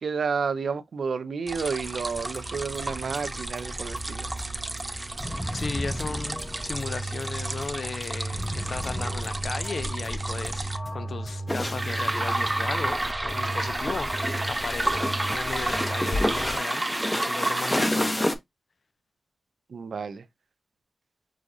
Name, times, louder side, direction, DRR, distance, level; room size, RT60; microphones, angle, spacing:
voice 1, 0.0-4.3 19.7-20.2, right 5 dB, 80° right, 0.5 m, -31 dB
sound 1, 1.5-10.8 11.8-17.8, right 2 dB, 25° right, 0.5 m, -32 dB
sound 2, 2.1-16.6, right 1 dB, 35° left, 3.2 m, -35 dB
voice 2, 5.5-16.8 17.1-18.4, left 4 dB, 70° left, 0.4 m, -36 dB
sound 3, 11.5-18.4, left 1 dB, 15° left, 0.8 m, -30 dB
6.2 x 2.3 x 2.6 m
cardioid pair, 50°, 0 cm